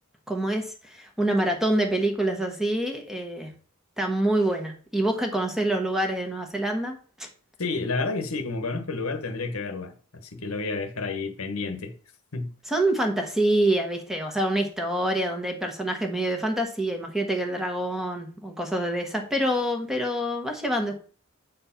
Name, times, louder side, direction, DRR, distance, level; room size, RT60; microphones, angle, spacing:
voice 1, 0.3-3.5 4.0-7.3 12.7-21.0, right 1 dB, ahead, 1.2 m, -26 dB
voice 2, 7.6-9.9 10.2-11.9 12.3-12.5, left 3 dB, 70° left, 1.2 m, -30 dB
8.3 x 4.4 x 5.7 m
head